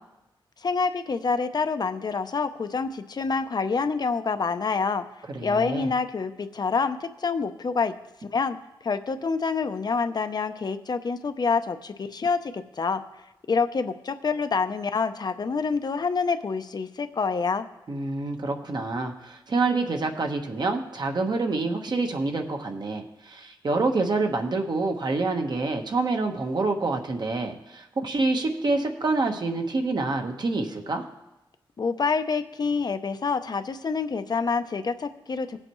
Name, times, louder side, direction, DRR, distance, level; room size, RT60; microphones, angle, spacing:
voice 1, 0.6-5.1 5.4-7.9 8.3-8.6 8.8-13.0 13.5-17.7 31.8-35.6, left 4 dB, 50° left, 9 dB, 0.7 m, -27 dB
voice 2, 5.3-5.9 17.9-31.0, right 3 dB, 55° right, 4 dB, 1.3 m, -27 dB
18.0 x 7.7 x 3.1 m, 0.97 s
wide cardioid pair, 90°, 9 cm